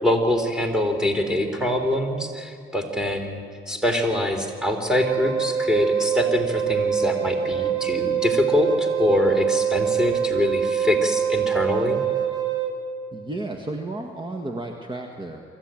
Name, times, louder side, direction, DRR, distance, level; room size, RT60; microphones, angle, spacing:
voice 1, 0.0-12.0, left 1 dB, 5° right, 4 dB, 3.6 m, -24 dB
Wind instrument woodwind instrument, 4.9-12.7, right 8 dB, 65° right, 2.3 m, -24 dB
voice 2, 13.1-15.4, right 2 dB, 25° right, 2 dB, 1.8 m, -32 dB
24.0 x 14.5 x 9.1 m, 2.3 s
cardioid pair, 90°, 20 cm